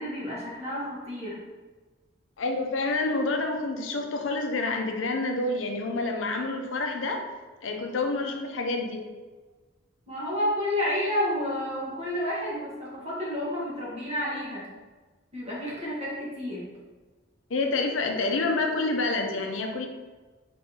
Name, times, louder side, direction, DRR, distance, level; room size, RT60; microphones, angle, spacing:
voice 1, 0.0-1.4 10.1-14.6 15.3-16.6, left 1 dB, 35° right, -6 dB, 1.3 m, -30 dB
voice 2, 2.4-7.2 7.6-9.0 17.5-19.9, left 3 dB, 85° left, 4 dB, 0.5 m, -28 dB
4.2 x 3.5 x 2.8 m, 1.3 s
head